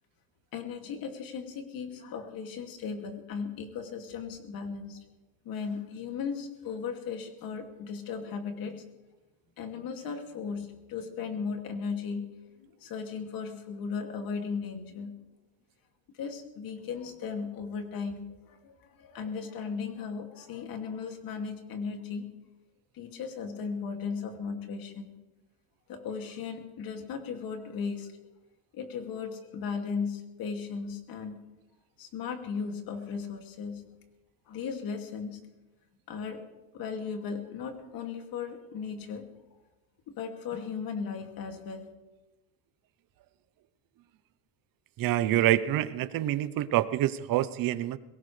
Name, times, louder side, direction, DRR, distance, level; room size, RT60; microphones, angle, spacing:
voice 1, 0.5-5.0 5.4-8.8 9.6-12.3 12.6-15.1 16.1-22.3 22.9-25.1 25.9-28.1 28.7-31.4 32.0-33.8 34.5-35.4 36.1-36.4 36.7-39.3 40.1-41.9, left 5 dB, 60° left, 4 dB, 2.6 m, -36 dB
voice 2, 45.0-48.0, right 13 dB, 55° right, 14 dB, 0.9 m, -26 dB
22.0 x 18.0 x 3.4 m, 1.1 s
cardioid pair, 110°, 40 cm